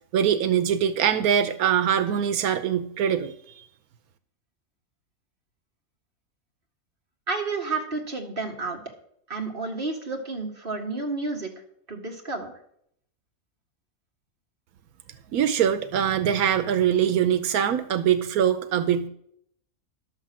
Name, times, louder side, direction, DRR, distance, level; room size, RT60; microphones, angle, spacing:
voice 1, 0.1-3.3 15.3-19.1, right 9 dB, 85° right, 10 dB, 1.2 m, -23 dB
voice 2, 7.3-8.8 9.3-11.5 11.9-12.5, right 3 dB, 40° right, 1 dB, 2.1 m, -30 dB
11.5 x 6.5 x 7.4 m, 0.69 s
omnidirectional pair, 1.5 m